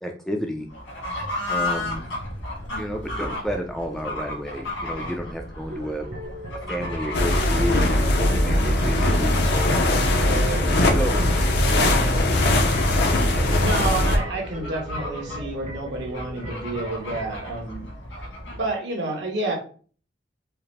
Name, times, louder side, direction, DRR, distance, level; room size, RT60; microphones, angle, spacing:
voice 1, 0.0-0.7 1.5-2.0 2.8-6.1 6.7-9.8 10.5-12.2 13.2-13.6, equal, ahead, 3 dB, 0.3 m, -31 dB
Fowl / Bird, 0.7-18.7, left 1 dB, 85° left, 1.6 m, -35 dB
sound 1, 5.7-17.4, right 1 dB, 40° right, 1.0 m, -39 dB
sound 2, 7.1-14.2, left 1 dB, 60° left, 0.5 m, -20 dB
voice 2, 10.2-10.6 13.6-17.8 18.6-19.5, right 2 dB, 65° right, 0 dB, 1.2 m, -29 dB
4.7 x 2.0 x 3.3 m, 0.41 s
head